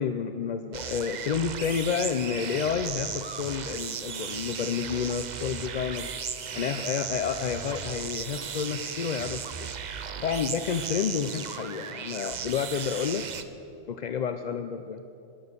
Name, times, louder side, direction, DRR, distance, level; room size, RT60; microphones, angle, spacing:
voice 1, 0.0-6.1 6.5-9.7 10.2-13.3 13.9-15.0, left 7 dB, 60° left, 8 dB, 0.4 m, -30 dB
sound 1, 0.7-13.4, right 7 dB, 50° right, 0.6 m, -36 dB
19.5 x 7.0 x 6.6 m, 2.6 s
omnidirectional pair, 1.2 m